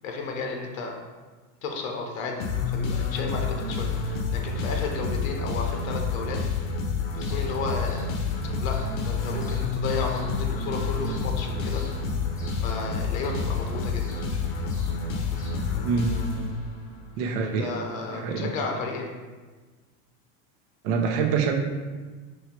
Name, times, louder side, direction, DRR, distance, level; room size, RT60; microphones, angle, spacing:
voice 1, 0.0-1.0 1.6-6.4 7.1-8.2 8.6-11.8 12.6-14.3 17.4-19.1, left 3 dB, 85° left, 2 dB, 0.8 m, -33 dB
sound 1, 2.4-17.0, left 4 dB, 55° left, 0.7 m, -29 dB
sound 2, 7.2-15.8, equal, 10° left, 0.9 m, -43 dB
voice 2, 15.8-16.5 17.2-17.7 18.1-18.5 20.8-21.6, right 5 dB, 65° right, 3 dB, 0.7 m, -26 dB
3.2 x 2.7 x 4.5 m, 1.3 s
supercardioid pair, 120°, 39 cm